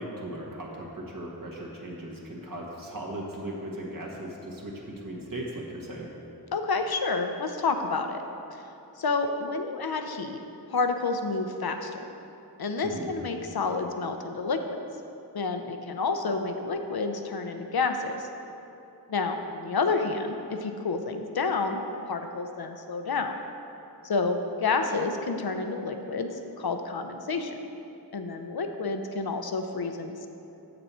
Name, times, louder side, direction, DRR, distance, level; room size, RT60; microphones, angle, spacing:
voice 1, 0.0-6.1 12.8-13.1, right 1 dB, 55° right, -3 dB, 1.4 m, -37 dB
voice 2, 6.5-8.2 9.0-10.4 10.7-12.0 12.6-14.8 15.3-18.2 19.1-21.8 22.1-23.3 24.0-27.6 28.1-30.3, left 4 dB, 65° left, 6 dB, 0.6 m, -29 dB
6.8 x 6.8 x 4.3 m, 2.9 s
wide cardioid pair, 45°, 40 cm